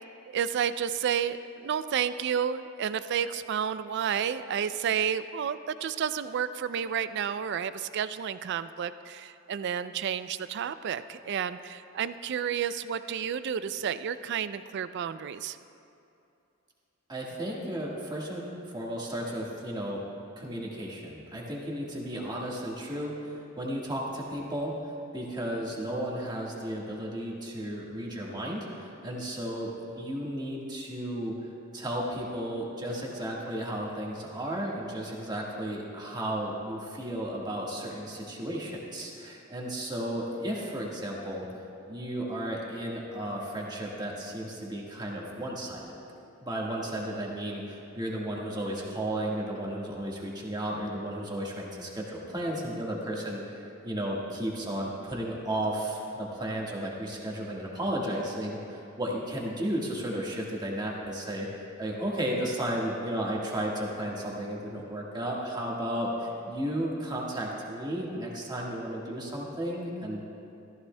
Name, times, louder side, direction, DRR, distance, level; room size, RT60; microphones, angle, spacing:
voice 1, 0.3-15.6, right 8 dB, 55° right, 13 dB, 0.3 m, -31 dB
voice 2, 17.1-20.0 20.4-24.7 25.1-31.3 31.7-41.5 41.9-46.0 46.4-61.5 61.8-70.2, right 1 dB, 20° right, -3 dB, 1.5 m, -34 dB
14.5 x 14.0 x 2.2 m, 2.7 s
head